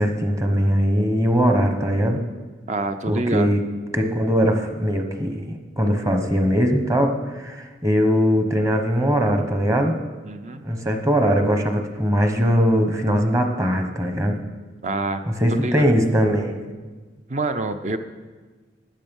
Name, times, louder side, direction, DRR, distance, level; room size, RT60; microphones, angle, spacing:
voice 1, 0.0-2.2 3.1-3.6 3.9-10.0 10.6-14.4 15.3-16.6, equal, 15° right, 5 dB, 1.0 m, -20 dB
voice 2, 2.7-3.5 10.2-10.7 14.8-15.2 15.6-15.9 17.3-18.0, right 2 dB, 35° right, 8 dB, 0.6 m, -26 dB
13.0 x 9.4 x 5.4 m, 1.4 s
head